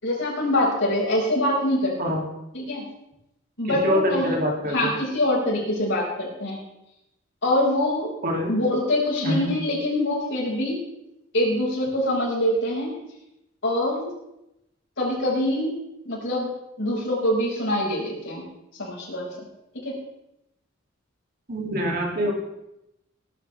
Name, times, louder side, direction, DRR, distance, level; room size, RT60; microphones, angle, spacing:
voice 1, 0.0-1.9 2.5-2.9 3.6-4.3 4.7-6.6 7.4-8.1 8.5-10.8 11.3-12.9 13.6-14.1 15.0-15.8 16.0-16.5 16.8-18.4 18.8-19.3 19.8-19.9, left 1 dB, 60° left, -3 dB, 5.6 m, -24 dB
voice 2, 3.6-4.9 8.2-8.5 9.2-9.5 21.5-22.3, equal, 45° right, 0 dB, 2.8 m, -25 dB
19.5 x 11.5 x 3.5 m, 0.86 s
head